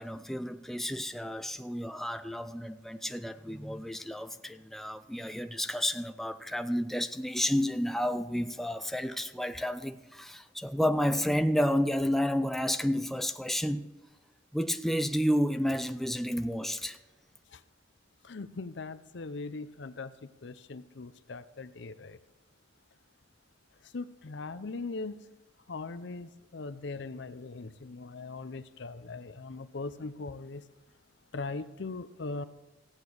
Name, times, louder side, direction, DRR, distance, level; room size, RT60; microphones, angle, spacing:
voice 1, 0.0-13.9 14.5-17.0, equal, ahead, 0.4 m, -31 dB
voice 2, 18.2-22.2 23.9-25.2 25.7-30.6 31.3-32.5, left 3 dB, 65° left, 0.7 m, -40 dB
15.5 x 8.9 x 6.3 m
head